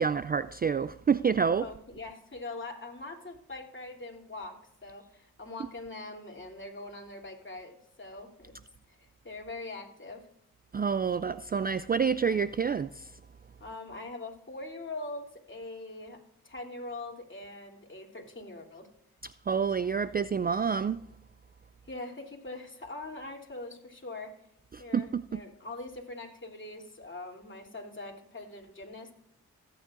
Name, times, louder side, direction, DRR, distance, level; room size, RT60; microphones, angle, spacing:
voice 1, 0.0-1.7 10.7-13.0 19.5-21.0 24.9-25.4, right 6 dB, 25° right, 0.4 m, -28 dB
voice 2, 1.6-8.6 8.9-10.2 13.6-18.9 21.8-24.3 24.8-29.1, left 2 dB, 30° left, 3.1 m, -42 dB
16.5 x 9.3 x 2.5 m
supercardioid pair, 45°, 37 cm